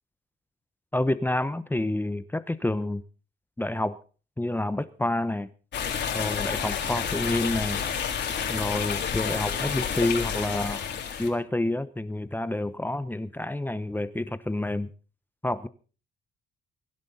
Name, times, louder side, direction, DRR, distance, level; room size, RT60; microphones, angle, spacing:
voice 1, 0.9-3.0 3.6-4.0 4.4-5.5 6.1-7.8 8.5-10.9 11.2-14.9 15.4-15.7, left 1 dB, 10° left, 14 dB, 0.8 m, -28 dB
sound 1, 5.7-11.3, left 7 dB, 60° left, 3.5 m, -30 dB
23.0 x 11.0 x 4.1 m, 0.38 s
cardioid pair, 90°, 20 cm